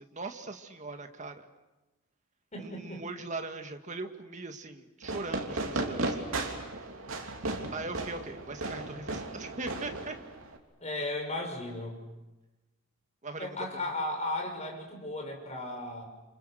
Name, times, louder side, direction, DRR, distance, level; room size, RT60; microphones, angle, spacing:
voice 1, 0.0-1.5 2.6-6.3 7.7-10.2 13.2-13.8, right 3 dB, 35° right, 6 dB, 1.9 m, -40 dB
voice 2, 2.5-3.0 10.8-12.0 13.4-16.0, left 1 dB, 30° left, 2 dB, 6.1 m, -35 dB
Fireworks, 5.0-10.6, right 2 dB, 70° right, 3.2 m, -35 dB
29.0 x 28.5 x 6.6 m, 1.1 s
head